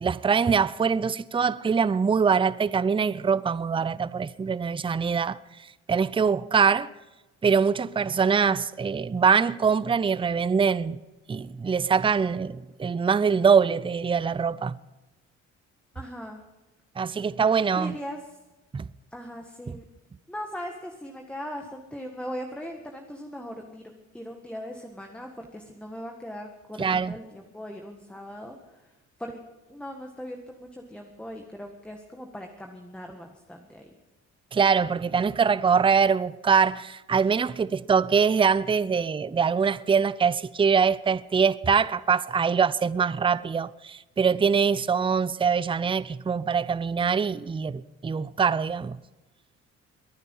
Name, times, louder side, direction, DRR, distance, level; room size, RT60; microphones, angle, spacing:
voice 1, 0.0-5.4 5.9-6.9 7.4-11.0 11.3-14.8 17.0-18.0 18.7-18.9 19.7-19.8 26.8-27.1 34.5-49.0, right 6 dB, 15° right, 0.5 m, -23 dB
voice 2, 3.7-4.1 15.9-16.4 17.7-18.4 19.1-19.8 20.3-28.9 29.2-29.4 29.7-33.9, equal, 5° left, 1.6 m, -39 dB
22.0 x 9.9 x 5.6 m
cardioid pair, 90°, 30 cm